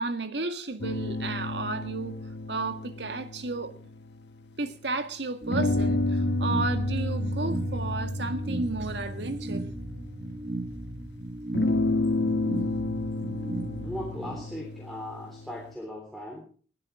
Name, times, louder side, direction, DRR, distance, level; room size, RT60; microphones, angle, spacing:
voice 1, 0.0-2.2 2.5-3.8 4.6-9.7, right 3 dB, 80° right, 1.9 m, -33 dB
sound 1, 0.8-4.7 5.5-10.6 11.5-15.7, left 2 dB, 75° left, 1.5 m, -31 dB
sound 2, 5.4-14.4, right 2 dB, 45° right, 2.1 m, -36 dB
voice 2, 13.8-16.4, left 1 dB, ahead, 3.4 m, -38 dB
21.0 x 12.0 x 4.9 m
head